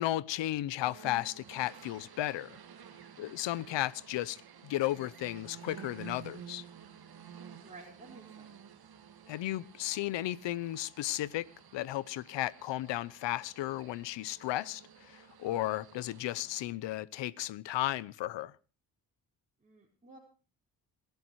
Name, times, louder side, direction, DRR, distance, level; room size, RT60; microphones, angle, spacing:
voice 1, 0.0-2.6 3.2-6.6 9.3-11.5 11.7-18.5, left 15 dB, 80° left, 0.9 m, -34 dB
sound 1, 0.8-16.7, right 8 dB, 55° right, 2.1 m, -52 dB
voice 2, 7.5-8.5 19.6-20.2, right 3 dB, 15° right, 5.0 m, -53 dB
27.5 x 11.5 x 3.1 m
supercardioid pair, 65°, 43 cm